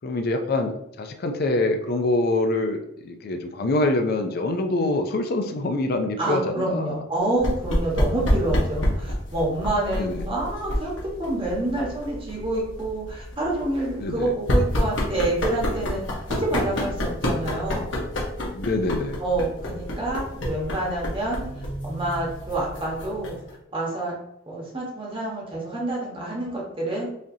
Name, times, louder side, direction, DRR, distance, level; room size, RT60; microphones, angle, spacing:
voice 1, 0.0-7.0 9.9-10.2 14.0-14.3 18.5-19.2, left 2 dB, 55° left, 5 dB, 0.4 m, -25 dB
voice 2, 4.7-5.0 6.2-17.9 19.2-23.4 23.7-24.1 24.5-27.1, right 2 dB, 30° right, -3 dB, 1.1 m, -28 dB
sound 1, 7.4-23.5, left 1 dB, 75° left, 1.0 m, -28 dB
4.9 x 2.6 x 2.7 m, 0.80 s
head